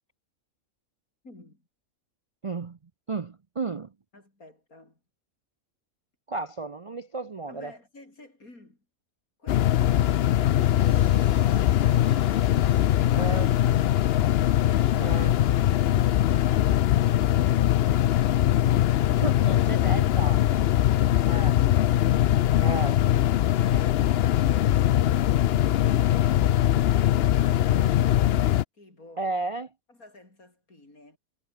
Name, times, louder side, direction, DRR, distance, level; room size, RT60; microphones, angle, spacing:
voice 1, 1.2-1.7 4.1-5.0 7.5-8.9 9.4-10.2 12.9-13.4 28.7-29.3 29.9-31.2, left 2 dB, 80° left, 7.1 m, -51 dB
voice 2, 2.4-2.8 3.1-3.9 6.3-7.7 13.2-13.5 15.0-15.3 19.2-20.4 21.3-21.6 22.6-22.9 29.2-29.7, right 3 dB, 45° right, 0.4 m, -33 dB
sound 1, 9.5-28.6, left 12 dB, 65° left, 0.6 m, -21 dB
sound 2, 10.6-18.8 20.0-20.4, right 3 dB, 90° right, 4.2 m, -53 dB
omnidirectional pair, 1.5 m